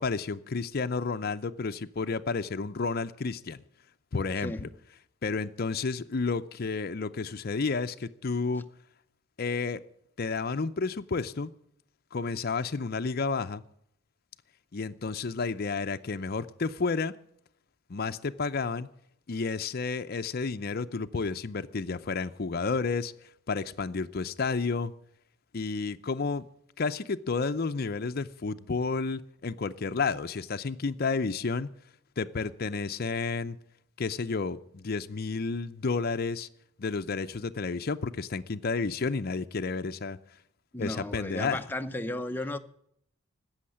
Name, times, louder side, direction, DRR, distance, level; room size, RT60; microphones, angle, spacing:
voice 1, 0.0-3.6 4.1-4.7 5.2-8.7 9.4-9.8 10.2-11.5 12.1-13.6 14.7-17.1 17.9-18.9 19.3-23.1 23.5-24.9 25.5-26.5 26.8-31.7 32.2-33.6 34.0-36.5 36.8-40.2 40.8-41.6, left 4 dB, 50° left, 0.6 m, -31 dB
voice 2, 4.4-4.7 40.7-42.6, left 1 dB, 10° left, 0.7 m, -34 dB
16.5 x 6.5 x 9.9 m
head